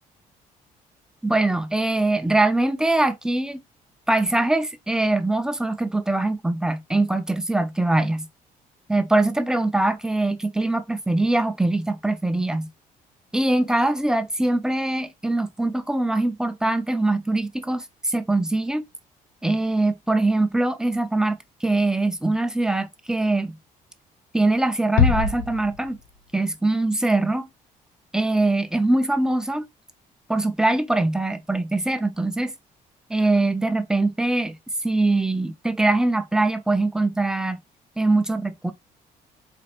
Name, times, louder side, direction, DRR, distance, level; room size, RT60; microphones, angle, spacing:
voice 1, 1.2-3.6 4.1-8.3 8.9-12.7 13.3-18.9 19.4-23.6 24.3-26.0 26.3-27.5 28.1-29.7 30.3-32.5 33.1-34.5 34.8-37.6 38.0-38.7, right 2 dB, 5° right, 0.5 m, -22 dB
Bass drum, 25.0-26.4, left 7 dB, 75° left, 0.7 m, -23 dB
4.1 x 2.5 x 3.0 m
cardioid pair, 115°, 15 cm